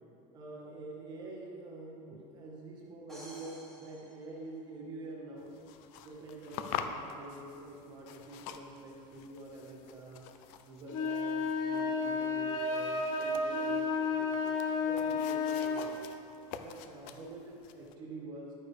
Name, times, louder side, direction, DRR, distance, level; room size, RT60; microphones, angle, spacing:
voice 1, 0.3-5.5 6.0-10.3 10.7-14.4 14.8-16.0 16.6-18.6, right 2 dB, 25° right, -3 dB, 1.7 m, -46 dB
sound 1, 3.1-5.1, right 1 dB, ahead, 1.7 m, -53 dB
sound 2, 5.4-17.9, left 8 dB, 50° left, 0.5 m, -46 dB
sound 3, 10.9-15.8, left 4 dB, 75° left, 1.3 m, -32 dB
10.5 x 9.8 x 3.4 m, 2.7 s
supercardioid pair, 170°, 17 cm